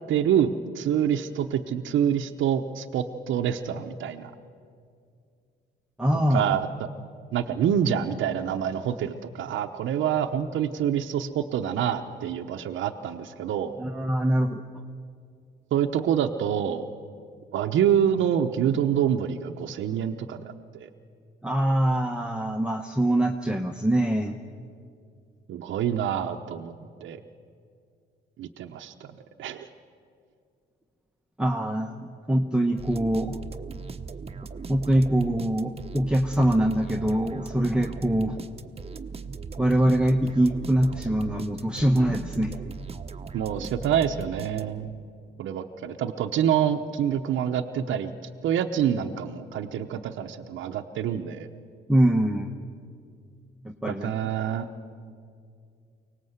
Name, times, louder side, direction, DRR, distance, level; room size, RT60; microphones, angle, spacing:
voice 1, 0.1-4.3 6.3-6.7 7.3-13.7 15.7-16.8 17.5-20.9 25.5-26.7 27.0-27.2 28.4-29.1 29.4-29.7 43.3-44.9 45.4-48.1 48.4-51.5 53.9-54.7, right 9 dB, 75° right, 4 dB, 0.9 m, -26 dB
voice 2, 6.0-6.4 13.8-14.6 21.4-24.3 31.4-31.9 32.3-33.4 34.7-38.4 39.6-42.5 51.9-52.5 53.6-54.1, right 1 dB, 5° right, 3 dB, 1.0 m, -23 dB
sound 1, 32.8-45.0, right 5 dB, 30° right, 1.0 m, -39 dB
23.5 x 18.0 x 8.0 m, 2.3 s
cardioid pair, 90°, 20 cm